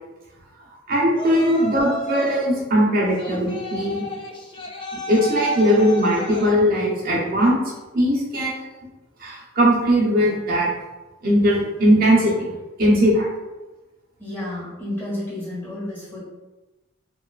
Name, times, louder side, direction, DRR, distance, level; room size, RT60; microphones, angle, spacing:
voice 1, 0.9-4.1 5.1-7.6 7.9-8.6 9.2-10.7 11.2-12.5 12.8-13.3, equal, 45° right, -4 dB, 0.7 m, -19 dB
Yell, 1.1-2.5 3.2-6.6, left 1 dB, 25° left, 0.3 m, -32 dB
voice 2, 14.2-16.2, left 1 dB, 10° left, -10 dB, 1.4 m, -31 dB
2.8 x 2.3 x 2.3 m, 1.1 s
head